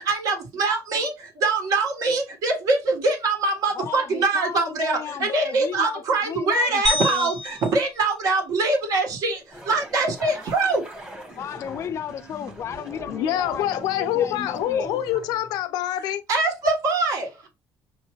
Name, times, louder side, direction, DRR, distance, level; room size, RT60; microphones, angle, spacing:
voice 1, 0.0-10.8 16.3-17.5, right 3 dB, 55° right, 1.3 m, -23 dB
voice 2, 3.8-7.3 11.4-15.0, left 8 dB, 40° left, 0.4 m, -34 dB
sound 1, 6.9-9.2, left 2 dB, 5° left, 0.7 m, -30 dB
sound 2, 9.5-15.6, equal, 15° right, 1.4 m, -42 dB
voice 3, 13.1-16.2, left 11 dB, 90° left, 0.6 m, -25 dB
5.7 x 2.6 x 3.0 m
cardioid pair, 145°, 7 cm